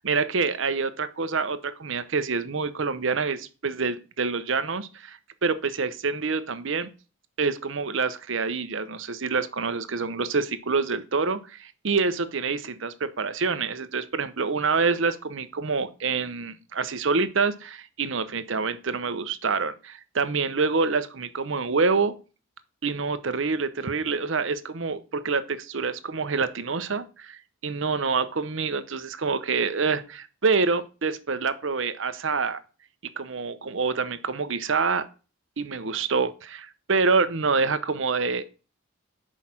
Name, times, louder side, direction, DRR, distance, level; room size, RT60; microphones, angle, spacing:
voice 1, 0.0-6.9 7.4-22.1 22.8-32.6 33.2-35.1 35.6-38.4, right 4 dB, 65° right, 12 dB, 0.8 m, -26 dB
6.3 x 5.0 x 5.7 m, 0.34 s
head